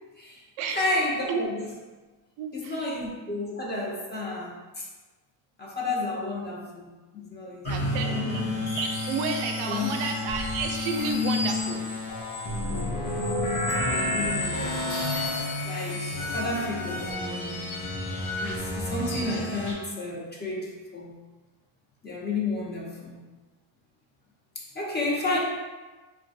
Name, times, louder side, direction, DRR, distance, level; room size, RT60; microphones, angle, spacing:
voice 1, 0.7-1.6 2.5-4.9 5.6-8.4 9.7-9.9 13.9-15.0 15.6-17.7 18.4-21.2 22.0-23.2 24.6-25.4, left 2 dB, 20° left, -4 dB, 0.6 m, -32 dB
voice 2, 2.4-2.9 7.6-11.8, right 5 dB, 80° right, 3 dB, 0.6 m, -32 dB
sound 1, 7.6-19.7, left 2 dB, 75° left, 0.9 m, -30 dB
3.1 x 2.3 x 2.6 m, 1.2 s
cardioid pair, 105°, 47 cm